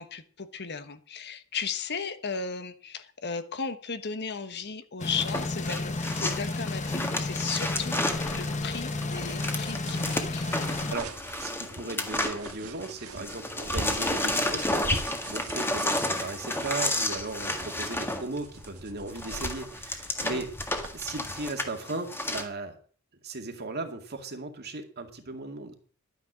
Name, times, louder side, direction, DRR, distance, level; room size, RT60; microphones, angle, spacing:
voice 1, 0.0-10.5 13.6-13.7 20.2-20.4, left 5 dB, 50° left, 11 dB, 1.2 m, -36 dB
sound 1, 5.0-11.0, left 2 dB, 35° left, 1.0 m, -32 dB
sound 2, 5.2-12.9 13.2-22.4, left 1 dB, 10° left, 1.7 m, -31 dB
sound 3, 8.0-20.9, right 2 dB, 80° right, 1.6 m, -43 dB
voice 2, 10.5-20.5 20.9-22.8 23.2-25.8, right 3 dB, 50° right, 5 dB, 2.2 m, -37 dB
11.5 x 9.7 x 6.2 m, 0.44 s
head